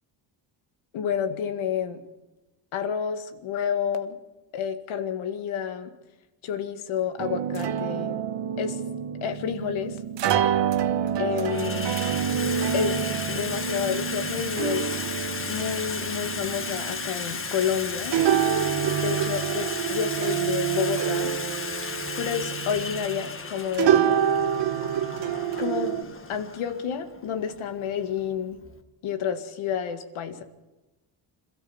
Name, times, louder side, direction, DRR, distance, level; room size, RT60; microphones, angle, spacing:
voice 1, 0.9-2.0 2.7-4.2 4.5-5.9 6.4-8.2 8.6-8.8 9.2-10.0 11.2-12.0 12.7-14.9 15.5-18.2 18.9-21.3 22.2-24.2 25.6-28.6 29.0-30.4, left 8 dB, 85° left, 7 dB, 2.0 m, -30 dB
sound 1, 7.2-23.4 23.7-26.0, right 9 dB, 65° right, 1.2 m, -27 dB
Water tap faucet / Sink (filling or washing), 9.4-9.6 10.5-10.9 11.2-28.8, left 4 dB, 25° left, 1.6 m, -35 dB
26.5 x 13.5 x 7.2 m, 1.1 s
cardioid pair, 115°, 47 cm